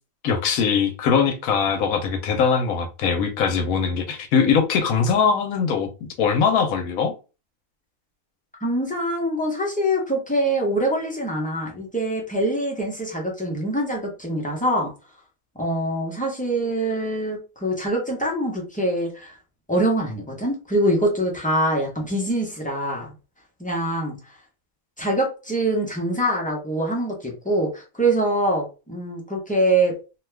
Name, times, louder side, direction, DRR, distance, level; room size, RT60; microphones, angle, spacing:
voice 1, 0.2-5.9 6.2-7.1, left 6 dB, 75° left, 6 dB, 1.1 m, -21 dB
voice 2, 8.6-14.9 15.6-19.4 19.7-23.1 23.6-24.2 25.0-29.9, right 1 dB, 10° left, -1 dB, 0.5 m, -24 dB
2.7 x 2.3 x 3.3 m, 0.32 s
omnidirectional pair, 1.5 m